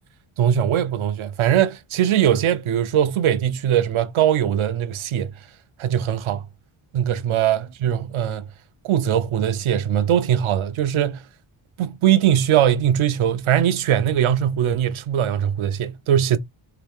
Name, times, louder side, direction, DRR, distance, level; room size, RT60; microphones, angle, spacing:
voice 1, 0.4-5.3 5.8-6.5 6.9-8.4 8.8-11.2 11.8-16.4, right 10 dB, 75° right, 0.6 m, -21 dB
3.1 x 2.9 x 3.5 m
wide cardioid pair, 145°, 49 cm